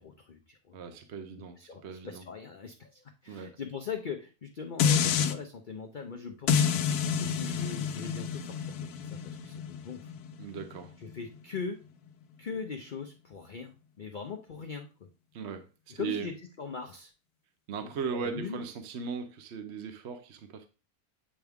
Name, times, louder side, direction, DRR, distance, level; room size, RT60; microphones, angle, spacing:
voice 1, 0.0-1.0 1.6-6.8 7.2-10.1 11.0-11.8 12.4-15.1 15.9-17.1 17.8-18.6, left 5 dB, 50° left, 4 dB, 0.6 m, -41 dB
voice 2, 0.7-2.2 3.3-3.6 10.4-11.0 15.3-16.3 17.7-20.7, right 6 dB, 55° right, 7 dB, 0.9 m, -38 dB
sound 1, 4.8-5.3 6.5-11.6 12.1-12.2, left 7 dB, 90° left, 1.2 m, -29 dB
8.7 x 4.6 x 3.5 m, 0.33 s
omnidirectional pair, 1.6 m